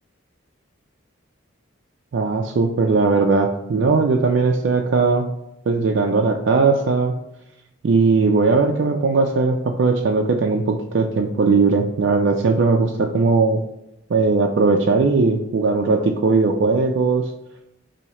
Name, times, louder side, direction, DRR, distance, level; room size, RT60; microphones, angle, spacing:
voice 1, 2.1-5.2 5.7-7.1 7.8-13.6 14.1-17.2, right 4 dB, 60° right, 2 dB, 0.4 m, -18 dB
4.4 x 2.7 x 2.9 m, 0.84 s
head